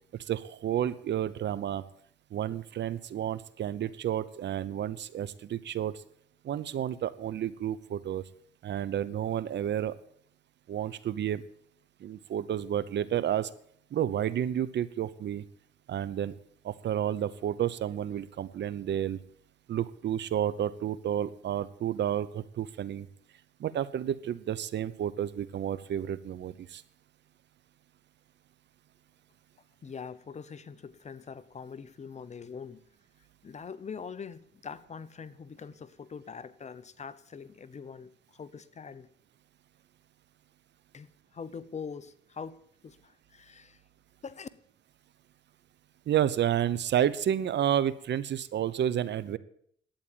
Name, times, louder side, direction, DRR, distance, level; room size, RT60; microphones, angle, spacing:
voice 1, 0.2-1.8 2.3-6.0 6.4-8.2 8.6-10.0 10.7-11.4 12.0-13.5 13.9-15.5 15.9-16.4 16.6-19.2 19.7-23.1 23.6-26.8 46.1-49.4, right 10 dB, 60° right, 17 dB, 0.9 m, -31 dB
voice 2, 29.8-32.8 33.4-39.1 40.9-43.8 44.2-44.5, left 6 dB, 35° left, 15 dB, 0.9 m, -43 dB
11.5 x 8.9 x 8.9 m, 0.66 s
cardioid pair, 90°, 20 cm